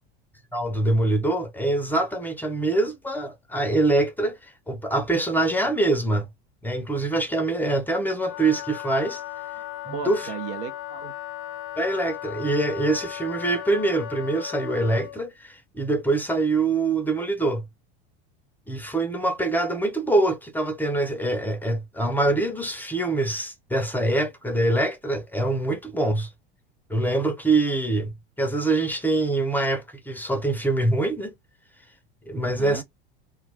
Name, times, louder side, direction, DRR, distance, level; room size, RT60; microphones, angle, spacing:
voice 1, 0.5-6.3 6.6-9.2 9.9-10.3 11.8-17.6 18.7-26.3 26.9-31.3 32.3-32.8, right 2 dB, 5° left, 0.5 m, -24 dB
Wind instrument woodwind instrument, 8.1-15.2, left 14 dB, 55° left, 0.5 m, -36 dB
voice 2, 9.9-11.1 32.4-32.8, right 9 dB, 70° right, 0.6 m, -35 dB
2.3 x 2.2 x 3.2 m
supercardioid pair, 110°, 29 cm